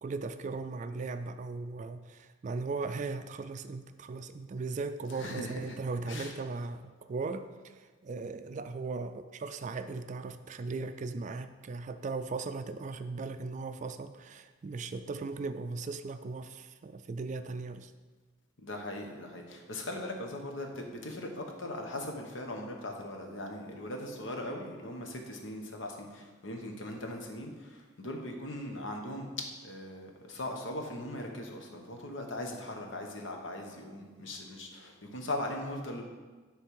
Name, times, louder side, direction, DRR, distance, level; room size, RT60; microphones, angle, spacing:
voice 1, 0.0-17.9, right 3 dB, 40° right, 10 dB, 0.3 m, -38 dB
voice 2, 5.1-5.8 6.1-6.3 18.6-36.0, left 1 dB, 80° left, 2 dB, 1.1 m, -39 dB
10.0 x 3.4 x 4.7 m, 1.4 s
head